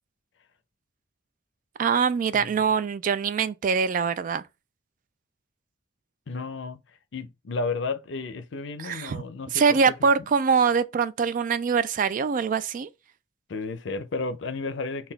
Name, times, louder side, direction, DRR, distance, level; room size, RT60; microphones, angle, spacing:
voice 1, 1.8-4.4 8.8-9.2 9.5-12.9, right 6 dB, 45° right, 0.3 m, -23 dB
voice 2, 6.3-6.8 7.1-10.1 13.5-15.1, left 3 dB, 70° left, 0.5 m, -32 dB
4.0 x 2.3 x 3.9 m
head